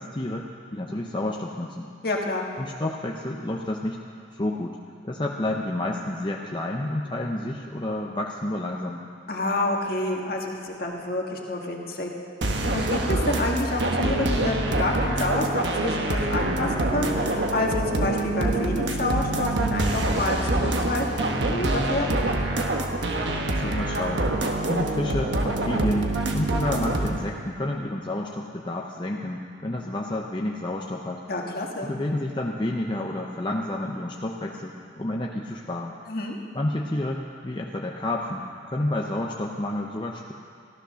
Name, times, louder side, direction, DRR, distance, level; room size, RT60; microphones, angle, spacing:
voice 1, 0.0-1.9 2.6-4.0 4.3-4.8 5.0-9.0 23.4-24.3 24.7-31.2 31.8-35.9 36.5-40.3, left 1 dB, 25° left, 0 dB, 0.7 m, -30 dB
voice 2, 2.0-2.5 9.3-12.1 12.7-22.2 31.3-31.9 36.1-36.4, left 2 dB, 55° left, 0 dB, 1.8 m, -28 dB
sound 1, 12.4-27.2, right 2 dB, 80° right, 1.3 m, -25 dB
14.0 x 13.0 x 6.4 m, 2.3 s
head